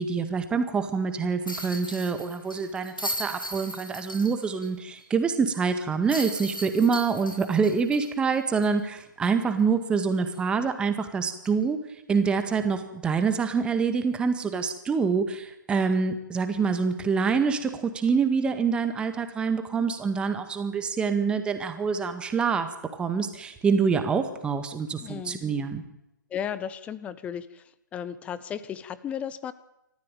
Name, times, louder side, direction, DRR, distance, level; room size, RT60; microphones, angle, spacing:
voice 1, 0.0-11.8 12.1-25.8, right 5 dB, 10° right, 8 dB, 1.9 m, -26 dB
sound 1, 1.5-4.7 5.0-5.1 6.1-8.8 9.2-9.3 11.4-11.6, equal, 85° left, 6.9 m, -37 dB
voice 2, 25.0-25.4 26.3-27.6 27.9-29.5, left 8 dB, 10° left, 16 dB, 0.8 m, -34 dB
27.5 x 14.5 x 9.2 m, 0.91 s
figure-of-eight pair, 135°, 11 cm